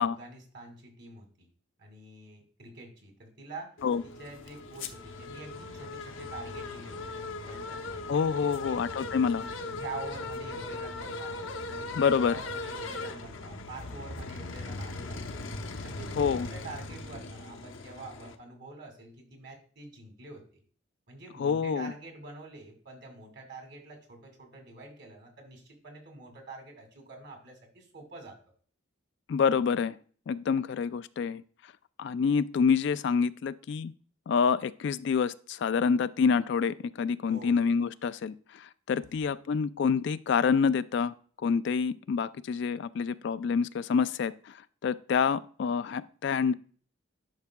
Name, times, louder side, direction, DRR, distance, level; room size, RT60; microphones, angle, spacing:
voice 1, 0.0-1.5 1.8-3.7 4.0-8.1 8.4-8.8 9.3-15.5 15.8-20.6 21.1-28.4 37.3-37.6, right 2 dB, 55° right, 2 dB, 2.3 m, -46 dB
sound 1, 3.8-18.4, left 2 dB, 75° left, 0.8 m, -39 dB
voice 2, 8.1-9.4 11.9-12.4 16.2-16.5 21.4-21.9 29.3-30.0 30.3-31.4 32.0-33.9 34.3-41.1 41.4-44.5 44.8-46.5, left 6 dB, 60° left, 14 dB, 0.3 m, -27 dB
10.5 x 5.7 x 2.2 m, 0.44 s
head